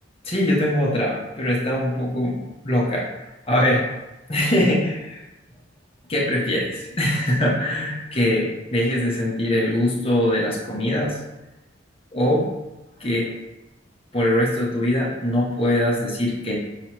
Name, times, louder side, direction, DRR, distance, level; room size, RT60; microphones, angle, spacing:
voice 1, 0.2-2.4 2.6-3.1 3.5-4.0 4.3-5.2 6.1-11.2 12.1-12.5 13.0-13.3 14.1-16.6, left 1 dB, 30° left, -3 dB, 0.9 m, -22 dB
5.7 x 2.9 x 3.0 m, 0.99 s
head